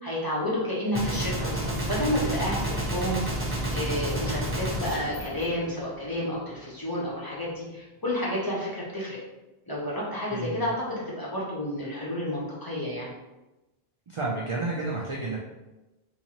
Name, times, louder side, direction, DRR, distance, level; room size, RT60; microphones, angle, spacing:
voice 1, 0.0-3.4 3.7-9.2 9.7-13.1, left 1 dB, 25° left, -6 dB, 0.9 m, -30 dB
Gunshot gunfire, 0.9-6.2, right 1 dB, 15° right, 0.8 m, -30 dB
voice 2, 10.3-10.7 14.1-15.4, right 3 dB, 45° right, -3 dB, 0.4 m, -31 dB
3.7 x 2.8 x 2.9 m, 1.0 s
omnidirectional pair, 1.0 m